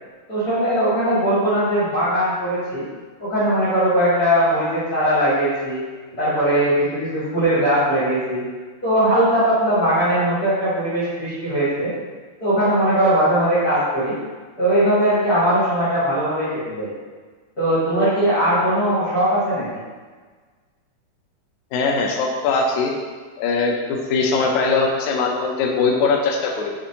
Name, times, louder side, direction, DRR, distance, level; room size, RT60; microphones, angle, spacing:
voice 1, 0.3-2.9 3.2-5.8 6.2-8.4 8.8-11.9 12.4-14.2 14.6-16.9 17.6-19.8, right 1 dB, 45° left, -12 dB, 1.2 m, -19 dB
voice 2, 21.7-22.9 23.4-26.7, left 4 dB, 80° left, 0 dB, 1.7 m, -21 dB
7.1 x 2.5 x 2.8 m, 1.4 s
omnidirectional pair, 4.0 m